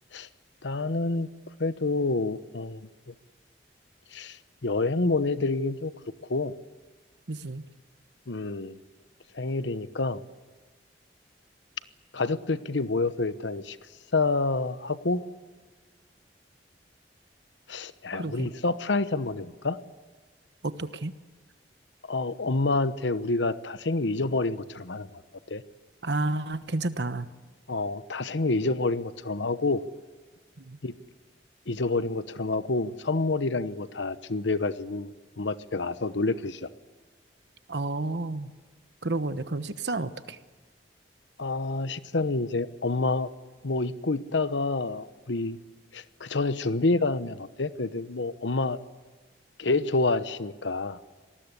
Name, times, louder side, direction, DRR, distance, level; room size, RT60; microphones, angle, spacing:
voice 1, 0.6-1.3 1.6-2.9 4.1-5.9 6.3-6.5 8.3-8.8 9.3-10.2 12.1-13.8 14.1-15.2 17.7-19.8 22.0-25.1 25.5-25.6 27.7-29.8 30.8-30.9 31.7-35.1 35.4-36.7 41.4-43.3 43.6-45.6 45.9-48.8 49.6-51.0, left 3 dB, 85° left, 13 dB, 1.0 m, -28 dB
voice 2, 7.3-7.6 18.1-18.5 20.6-21.1 26.0-27.3 30.6-30.8 37.7-38.5 39.0-40.4, right 2 dB, 70° right, 12 dB, 1.1 m, -31 dB
26.0 x 19.5 x 8.3 m, 1.3 s
head